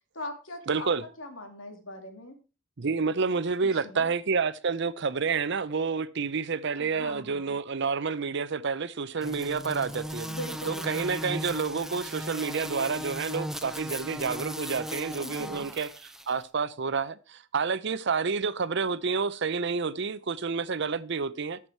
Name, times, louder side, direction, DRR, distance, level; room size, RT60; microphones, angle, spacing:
voice 1, 0.1-2.4 3.6-4.1 6.8-7.6 10.2-11.1 15.2-15.7, left 1 dB, 85° left, 2.6 m, -41 dB
voice 2, 0.7-1.0 2.8-10.3 10.7-15.9 16.3-21.6, right 5 dB, 60° right, 0.7 m, -29 dB
sound 1, 9.2-16.3, equal, ahead, 0.6 m, -37 dB
13.5 x 6.0 x 4.6 m
head